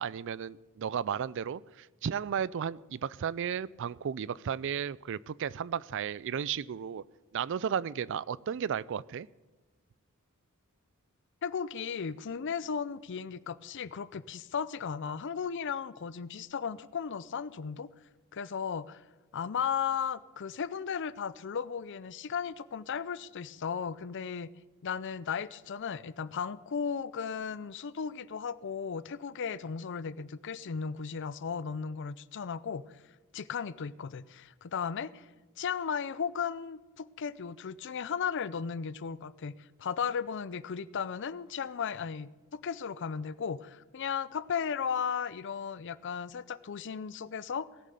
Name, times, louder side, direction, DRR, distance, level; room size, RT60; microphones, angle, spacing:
voice 1, 0.0-7.0 7.3-9.3, right 8 dB, 60° right, 22 dB, 0.4 m, -34 dB
voice 2, 11.4-17.9 18.3-19.0 19.3-24.5 24.8-32.8 33.3-35.3 35.6-47.7, left 6 dB, 60° left, 16 dB, 0.5 m, -35 dB
18.0 x 7.4 x 6.9 m, 1.2 s
head